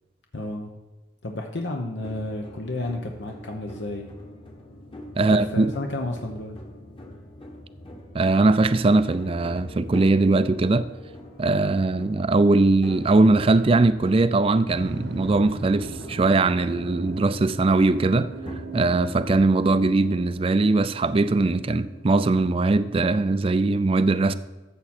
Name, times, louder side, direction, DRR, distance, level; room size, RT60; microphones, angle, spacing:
voice 1, 0.3-0.7 1.2-4.1 5.3-6.6, left 2 dB, 70° left, 0.9 m, -31 dB
sound 1, 2.0-20.0, left 1 dB, 30° left, 1.3 m, -42 dB
voice 2, 5.2-5.7 8.1-10.8 11.4-18.3 18.7-24.3, right 3 dB, 30° right, 0.4 m, -20 dB
sound 2, 14.7-23.6, right 2 dB, 85° right, 1.3 m, -40 dB
14.0 x 7.3 x 4.3 m
head